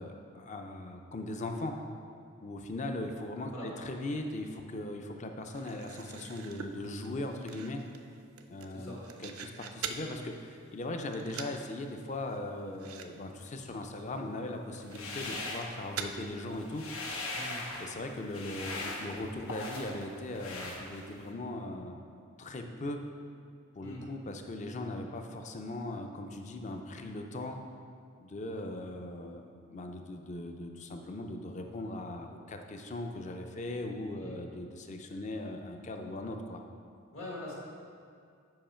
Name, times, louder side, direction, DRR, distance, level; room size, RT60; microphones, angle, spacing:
voice 1, 0.0-1.7 2.4-7.8 8.5-16.8 17.8-22.0 22.4-23.0 23.7-27.6 28.2-36.6, left 2 dB, 35° left, 4 dB, 0.5 m, -39 dB
sound 1, 5.5-10.1 10.5-10.9 11.1-11.6 11.9-12.0 12.3-12.4 12.7-13.1 13.3-13.5 13.9-14.0 14.7-16.1, right 6 dB, 85° right, 0.5 m, -44 dB
voice 2, 8.7-9.0 17.3-17.6 23.8-24.0 34.2-34.4 37.1-37.5, left 1 dB, 65° left, -4 dB, 1.7 m, -43 dB
sound 2, 14.8-16.2 16.5-17.9 18.3-20.0 20.3-21.3, left 2 dB, 85° left, 1.0 m, -40 dB
7.7 x 5.0 x 4.4 m, 2.3 s
head